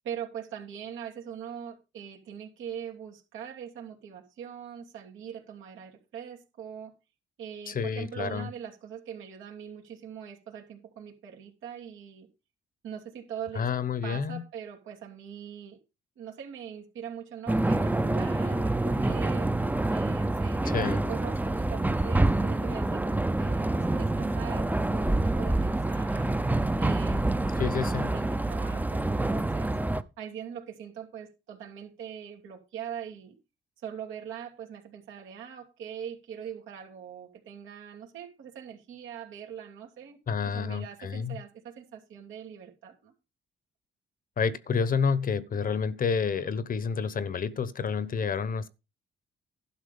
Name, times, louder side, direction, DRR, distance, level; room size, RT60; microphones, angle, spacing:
voice 1, 0.0-6.9 7.4-12.3 12.8-13.7 14.0-15.8 16.2-19.5 19.9-26.3 26.8-29.7 30.2-33.4 33.8-40.2 40.5-43.1, right 8 dB, 80° right, 2.8 m, -42 dB
voice 2, 7.7-8.5 13.5-14.4 20.7-21.0 27.6-28.1 40.3-41.4 44.4-48.7, left 6 dB, 45° left, 1.0 m, -29 dB
sound 1, 17.5-30.0, right 2 dB, 10° right, 0.7 m, -27 dB
11.5 x 6.0 x 5.3 m
cardioid pair, 90°, 20 cm